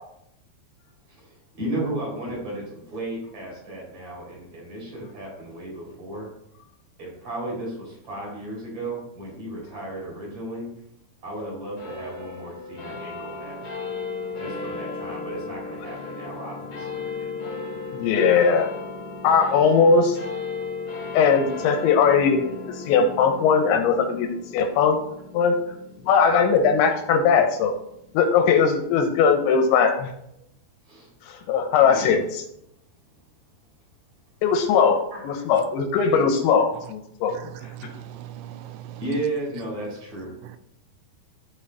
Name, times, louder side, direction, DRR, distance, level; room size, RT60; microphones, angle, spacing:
voice 1, 1.1-6.3 7.0-10.7 11.2-13.7 14.4-17.0 30.9-31.1 31.8-32.2 35.1-35.3 39.0-40.3, right 1 dB, 35° right, -3 dB, 4.5 m, -34 dB
sound 1, 11.8-28.5, left 4 dB, 45° left, 3.3 m, -36 dB
voice 2, 17.9-18.7 19.2-20.2 21.1-24.3 24.5-25.0 25.3-25.5 26.1-27.7 28.1-30.1 31.3-32.4 34.4-35.0 35.2-37.3, left 6 dB, 85° left, 5 dB, 3.1 m, -19 dB
voice 3, 37.3-39.0 40.4-40.6, right 12 dB, 85° right, 11 dB, 2.9 m, -40 dB
11.5 x 5.6 x 3.9 m, 0.78 s
omnidirectional pair, 5.3 m